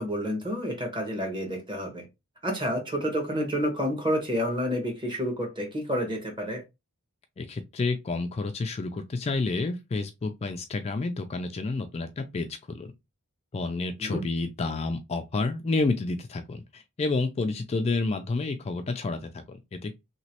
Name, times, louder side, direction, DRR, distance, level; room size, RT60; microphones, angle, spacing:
voice 1, 0.0-2.1 2.4-6.6 14.0-14.2, equal, 20° right, 1.2 m, -29 dB
voice 2, 7.4-12.9 13.5-19.9, left 3 dB, 30° left, 0.3 m, -30 dB
3.0 x 2.9 x 2.8 m
head